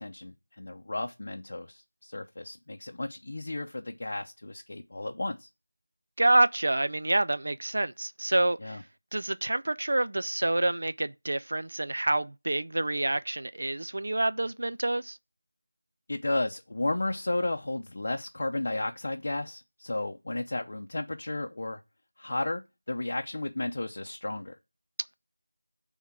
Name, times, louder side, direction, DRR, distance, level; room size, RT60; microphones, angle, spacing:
voice 1, 0.0-5.5 8.6-8.8 16.1-21.8 22.2-22.6 22.9-24.6, left 2 dB, 45° left, 0.7 m, -33 dB
voice 2, 6.2-8.8 9.1-15.2, right 2 dB, 55° right, 0.3 m, -27 dB
9.2 x 3.6 x 6.1 m
figure-of-eight pair, 175°, 0 cm